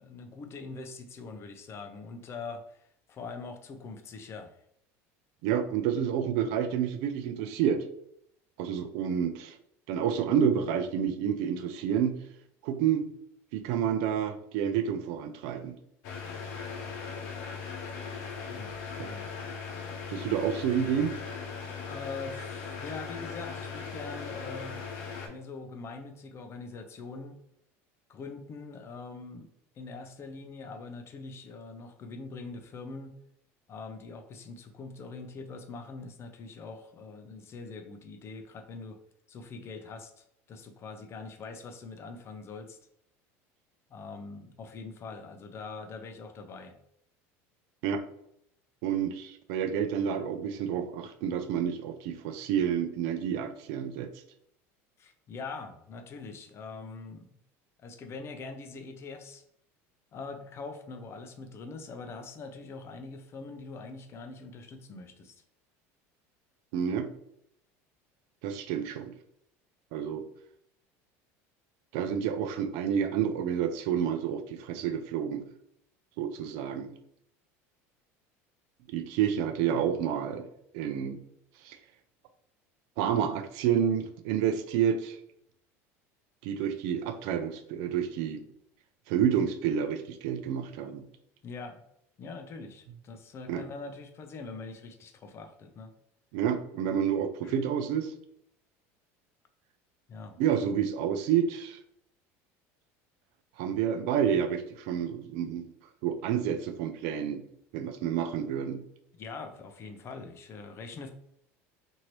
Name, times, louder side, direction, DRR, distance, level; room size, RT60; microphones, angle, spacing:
voice 1, 0.0-2.8 3.1-4.6 18.5-19.3 21.9-24.8 25.3-27.4 28.1-29.5 29.8-33.1 33.7-39.0 39.3-42.8 43.9-46.8 55.0-57.3 57.8-59.4 60.1-65.3 91.4-91.8 92.2-95.9 97.4-97.6 100.1-100.4 109.2-111.1, left 4 dB, 35° left, 6 dB, 0.5 m, -43 dB
voice 2, 5.4-7.9 8.6-9.6 9.9-12.2 12.6-13.1 13.5-15.8 19.0-19.1 20.1-21.2 47.8-48.0 48.8-54.1 66.7-67.1 68.4-69.1 69.9-70.2 71.9-75.5 76.2-76.9 78.9-80.5 80.7-81.2 81.6-81.8 83.0-85.2 86.4-88.4 89.1-91.0 93.5-93.6 96.3-98.1 100.4-101.8 103.6-105.7 106.0-107.4 107.7-108.8, right 8 dB, 70° right, 9 dB, 0.4 m, -29 dB
sound 1, 16.0-25.3, left 5 dB, 75° left, 0.8 m, -39 dB
2.9 x 2.7 x 3.0 m, 0.73 s
supercardioid pair, 115°, 7 cm